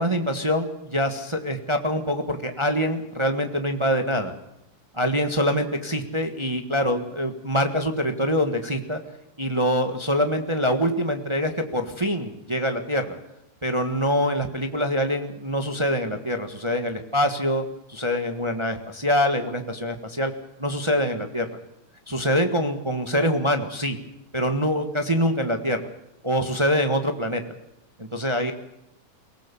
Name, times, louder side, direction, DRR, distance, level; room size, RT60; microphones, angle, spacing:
voice 1, 0.0-4.3 4.9-9.0 9.4-13.2 13.6-17.6 17.9-20.3 20.6-21.5 22.1-24.0 24.3-25.8 26.2-27.4 28.0-28.5, equal, 15° right, 6 dB, 1.4 m, -24 dB
23.0 x 19.0 x 7.1 m, 0.86 s
omnidirectional pair, 2.4 m